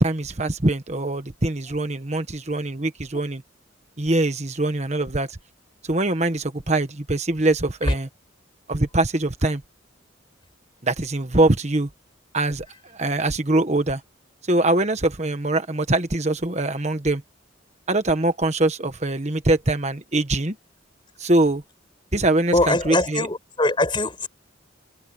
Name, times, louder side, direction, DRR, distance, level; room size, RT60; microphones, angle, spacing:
voice 1, 0.0-3.4 4.0-5.3 5.9-8.1 8.7-9.6 10.8-11.9 12.3-12.7 12.9-14.0 14.5-17.2 17.9-20.5 21.2-21.6 22.1-23.3, right 2 dB, 35° right, 1.4 m, -23 dB
voice 2, 22.5-24.3, left 2 dB, 25° left, 7.4 m, -22 dB
head